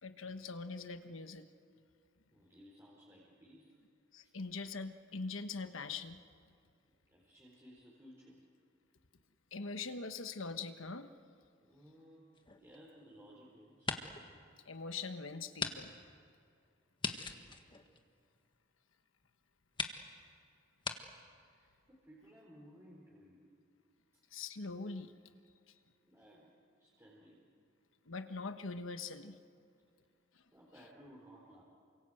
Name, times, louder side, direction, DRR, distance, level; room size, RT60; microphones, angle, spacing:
voice 1, 0.0-1.4 4.1-6.2 9.5-11.1 14.7-15.9 24.3-25.1 28.1-29.4, left 4 dB, 80° left, 8 dB, 1.3 m, -42 dB
voice 2, 2.3-3.8 4.2-4.3 7.1-8.4 11.6-12.3 12.5-14.0 21.4-23.5 24.1-24.2 26.1-27.4 30.5-31.6, equal, 15° right, -5 dB, 4.1 m, -59 dB
sound 1, 12.4-13.3 13.7-14.3 14.7-14.8 15.6-15.8 16.0-16.1 17.0-18.6 19.2-19.3 19.7-20.0 20.8-21.0, left 4 dB, 25° left, 1.6 m, -40 dB
28.5 x 25.5 x 7.9 m, 2.4 s
head